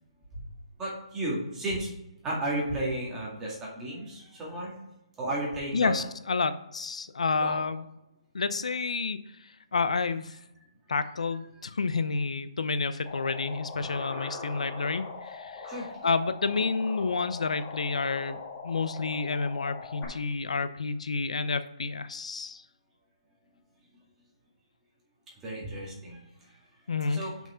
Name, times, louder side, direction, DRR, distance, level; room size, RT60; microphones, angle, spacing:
voice 1, 0.8-1.9 2.2-4.8 5.2-5.9 7.3-7.6 13.8-13.9 15.7-15.9 25.4-26.6 26.9-27.3, right 1 dB, 10° right, -4 dB, 2.1 m, -33 dB
voice 2, 5.7-7.8 8.3-10.4 10.9-15.7 16.0-22.6 26.9-27.2, left 4 dB, 80° left, 12 dB, 0.7 m, -30 dB
sound 1, 13.0-20.0, left 4 dB, 20° left, 1.8 m, -41 dB
5.9 x 5.6 x 5.6 m, 0.89 s
hypercardioid pair, 165°, 3 cm